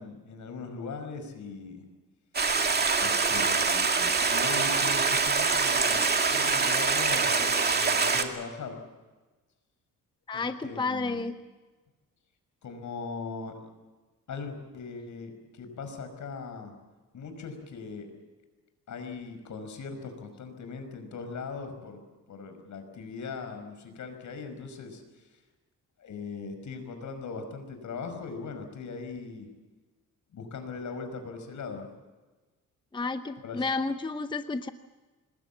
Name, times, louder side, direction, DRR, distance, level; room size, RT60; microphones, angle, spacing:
voice 1, 0.0-1.9 3.0-8.9 10.3-11.2 12.6-13.7 14.3-16.7 17.1-18.1 18.9-22.0 22.3-25.3 26.0-29.5 30.3-31.9 33.4-33.7, left 4 dB, 60° left, 7 dB, 5.6 m, -40 dB
Stream, 2.3-8.2, right 4 dB, 30° right, 2.4 m, -25 dB
voice 2, 10.3-11.3 32.9-34.7, left 3 dB, 15° left, 9 dB, 0.8 m, -31 dB
26.0 x 21.0 x 7.3 m, 1.2 s
cardioid pair, 125°, 33 cm